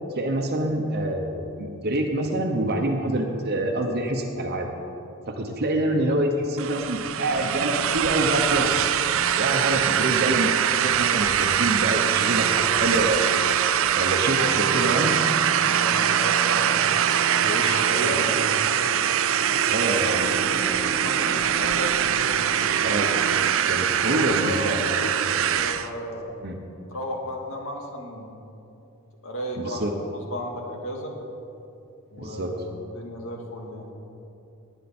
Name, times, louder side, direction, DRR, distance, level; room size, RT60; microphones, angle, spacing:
voice 1, 0.1-4.7 5.3-8.8 9.4-10.5 10.8-13.4 13.9-15.2 18.0-18.2 19.7-20.6 22.8-23.1 23.7-24.8 26.4-26.6 29.6-29.9 32.2-32.5, right 1 dB, 50° right, 2 dB, 1.0 m, -26 dB
sound 1, 6.6-25.9, right 9 dB, 65° right, 0.5 m, -23 dB
voice 2, 14.4-14.7 15.0-18.5 19.6-22.5 23.8-25.1 25.4-26.4 26.9-28.3 29.2-29.8 30.1-31.1 32.1-33.9, left 1 dB, 70° left, 1 dB, 2.0 m, -34 dB
19.0 x 9.2 x 4.4 m, 2.7 s
head